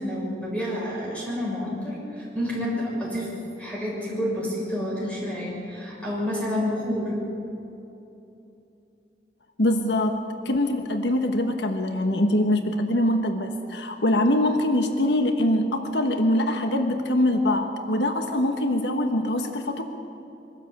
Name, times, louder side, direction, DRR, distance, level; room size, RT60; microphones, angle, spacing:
voice 1, 0.0-3.3 3.6-7.1, equal, 5° left, -5 dB, 6.6 m, -29 dB
voice 2, 9.6-10.2 10.4-19.8, left 1 dB, 85° left, 5 dB, 1.3 m, -23 dB
23.5 x 13.0 x 8.5 m, 2.9 s
head